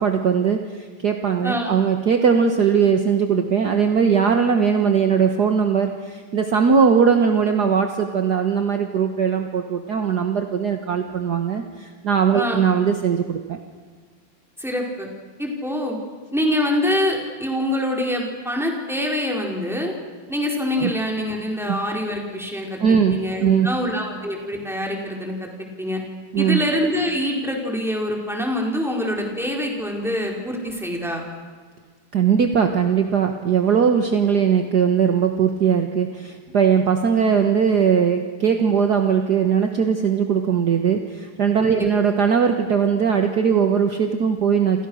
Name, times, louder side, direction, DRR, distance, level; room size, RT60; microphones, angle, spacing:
voice 1, 0.0-13.6 20.8-20.9 21.6-21.8 22.8-23.8 26.3-26.6 32.1-44.9, right 7 dB, 50° right, 5 dB, 1.8 m, -20 dB
voice 2, 1.4-1.7 12.3-12.6 14.6-15.1 15.4-16.0 16.3-19.9 20.3-22.8 23.1-26.0 26.4-31.2 41.6-41.9, left 1 dB, ahead, 0 dB, 4.7 m, -25 dB
29.5 x 28.0 x 6.5 m, 1.5 s
omnidirectional pair, 2.4 m